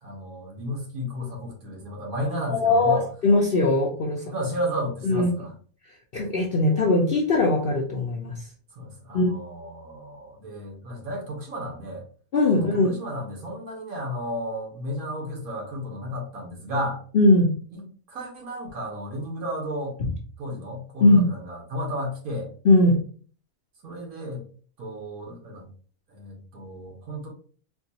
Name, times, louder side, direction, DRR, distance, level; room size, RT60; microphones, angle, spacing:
voice 1, 0.0-3.0 4.3-5.5 8.7-12.0 12.5-17.0 17.7-20.0 20.4-22.5 23.8-24.4 24.8-25.7 26.1-27.3, equal, 90° right, 0 dB, 1.6 m, -33 dB
voice 2, 2.5-4.2 5.0-5.3 6.1-8.4 9.1-9.3 12.3-12.9 17.1-17.5 21.0-21.2 22.6-23.0, left 2 dB, 55° left, -1 dB, 0.7 m, -20 dB
4.4 x 2.3 x 2.7 m, 0.42 s
omnidirectional pair, 1.5 m